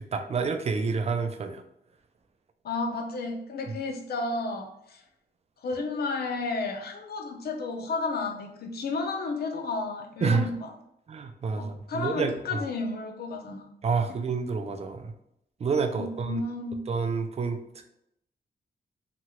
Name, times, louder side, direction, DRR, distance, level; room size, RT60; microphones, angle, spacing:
voice 1, 0.1-1.6 10.2-10.5 11.1-12.6 13.8-15.1 15.6-16.4 16.9-17.6, right 5 dB, 40° right, 7 dB, 0.4 m, -28 dB
voice 2, 2.6-5.0 5.6-10.7 11.5-13.7 16.0-16.9, left 3 dB, 70° left, 3 dB, 0.6 m, -32 dB
2.9 x 2.3 x 2.9 m, 0.78 s
wide cardioid pair, 100°, 17 cm